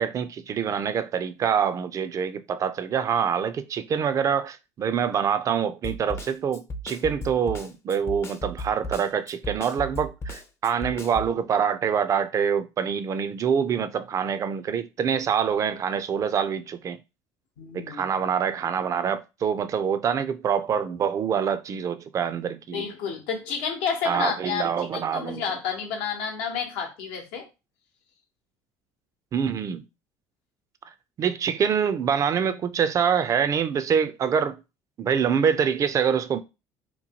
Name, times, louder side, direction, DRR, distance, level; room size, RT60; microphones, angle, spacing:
voice 1, 0.0-17.0 17.7-22.9 24.0-25.4 29.3-29.8 31.2-34.6 35.0-36.4, right 7 dB, 40° right, 0.4 m, -25 dB
Snare drum, 5.8-11.3, equal, 30° left, 0.5 m, -35 dB
voice 2, 17.6-18.2 22.7-27.5, left 6 dB, 80° left, 0.8 m, -30 dB
2.9 x 2.2 x 2.8 m
supercardioid pair, 85°, 8 cm